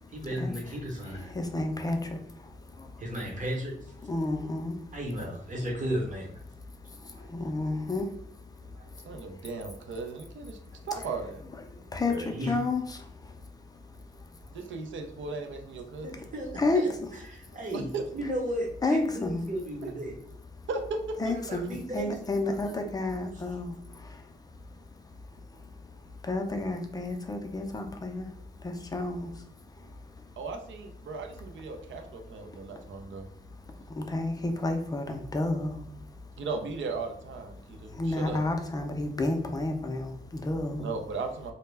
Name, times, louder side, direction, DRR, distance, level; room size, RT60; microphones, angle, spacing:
voice 1, 0.1-1.3 3.0-3.9 4.9-6.4 7.1-7.3 8.7-9.0 12.1-12.5 16.0-16.9 17.3-17.8 18.1-20.1 21.2-22.1 22.5-22.8, right 1 dB, 40° right, -1 dB, 0.9 m, -35 dB
voice 2, 1.3-2.0 4.1-4.8 7.3-8.1 11.9-13.0 16.6-16.8 18.8-19.4 21.2-23.7 26.3-28.3 28.6-29.3 34.0-35.8 38.0-40.9, left 2 dB, 20° left, 5 dB, 0.4 m, -30 dB
voice 3, 9.0-10.6 10.8-11.4 14.5-16.1 17.7-18.0 19.8-19.9 20.7-21.6 30.4-33.3 36.4-38.4 40.8-41.5, right 4 dB, 85° right, 5 dB, 0.5 m, -36 dB
2.1 x 2.0 x 3.3 m, 0.68 s
wide cardioid pair, 115°, 19 cm